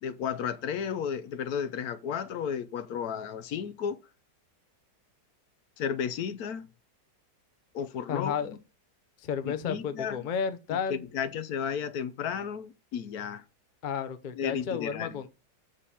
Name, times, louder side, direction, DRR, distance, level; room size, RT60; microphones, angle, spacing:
voice 1, 0.0-4.0 5.8-6.6 7.7-8.6 9.5-10.2 10.9-13.4 14.4-15.2, left 7 dB, 65° left, 1.0 m, -33 dB
voice 2, 8.1-8.6 9.2-11.0 13.8-15.3, left 7 dB, 50° left, 0.6 m, -32 dB
6.9 x 5.4 x 5.6 m
omnidirectional pair, 2.0 m